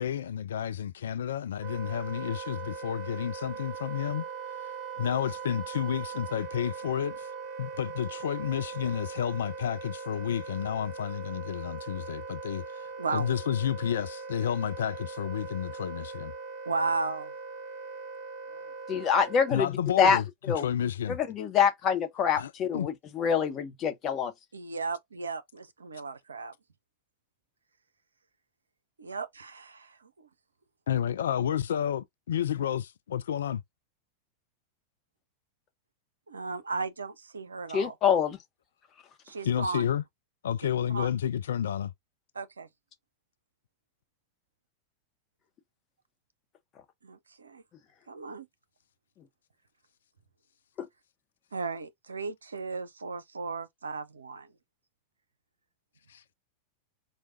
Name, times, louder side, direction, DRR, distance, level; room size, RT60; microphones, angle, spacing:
voice 1, 0.0-4.3 5.0-7.3 7.6-16.3 19.5-20.2 20.6-21.2 22.4-22.9 30.9-33.6 39.4-40.0 40.4-41.9 56.1-56.2, left 9 dB, 65° left, 0.3 m, -31 dB
Wind instrument woodwind instrument, 1.6-19.8, right 5 dB, 35° right, 1.7 m, -40 dB
voice 2, 13.0-13.3 16.7-17.3 18.5-18.7 24.5-26.5 29.0-30.1 36.3-37.9 39.3-39.9 40.9-41.1 42.4-42.7 47.0-47.6 48.1-48.5 51.5-54.5, right 4 dB, 75° right, 0.5 m, -35 dB
voice 3, 18.9-20.2 20.5-20.7 21.1-24.3 37.7-38.4 50.8-50.9, left 7 dB, 30° left, 0.9 m, -26 dB
4.6 x 2.2 x 2.6 m
figure-of-eight pair, 90°, 0 cm